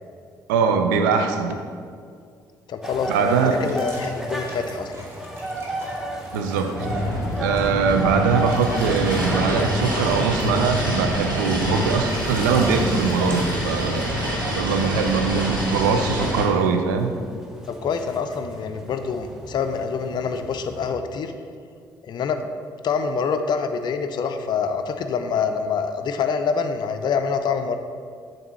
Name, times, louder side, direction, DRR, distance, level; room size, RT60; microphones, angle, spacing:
voice 1, 0.5-1.6 3.1-3.6 6.3-6.9 7.4-14.1 14.5-17.1, right 5 dB, 70° right, 6 dB, 0.5 m, -22 dB
voice 2, 2.7-5.0 17.7-21.3 22.1-22.5 22.8-27.8, left 5 dB, 45° left, 7 dB, 0.5 m, -26 dB
sound 1, 2.8-20.9, right 1 dB, 5° right, 0.8 m, -35 dB
sound 2, 3.5-15.1, right 1 dB, 25° right, 1.4 m, -43 dB
sound 3, 6.7-16.4, equal, 85° right, 0.8 m, -26 dB
7.1 x 2.7 x 5.7 m, 2.2 s
figure-of-eight pair, 45°, 11 cm